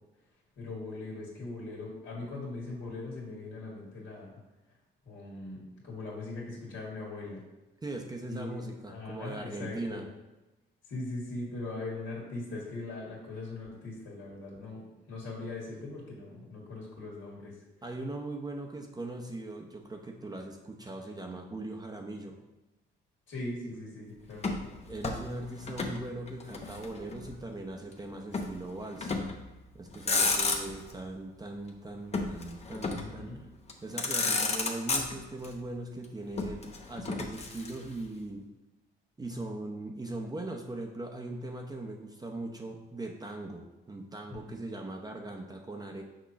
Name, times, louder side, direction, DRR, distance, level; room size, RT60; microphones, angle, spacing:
voice 1, 0.6-4.4 5.0-7.4 8.3-8.6 8.9-10.0 10.8-17.6 23.3-24.7 32.9-33.4 44.3-44.6, left 2 dB, 75° left, -4 dB, 2.0 m, -40 dB
voice 2, 7.8-10.1 17.8-22.4 24.9-29.1 29.7-33.3 33.8-38.4 39.2-46.0, right 2 dB, 20° right, 1 dB, 0.7 m, -40 dB
Motor vehicle (road), 24.4-26.0 26.3-27.4 28.3-28.6 29.0-29.4 29.9-30.9 32.1-33.2 33.7-33.8 34.0-35.5 36.4-38.0, left 3 dB, 35° left, 0.9 m, -32 dB
6.3 x 3.0 x 5.6 m, 1.1 s
cardioid pair, 90°, 20 cm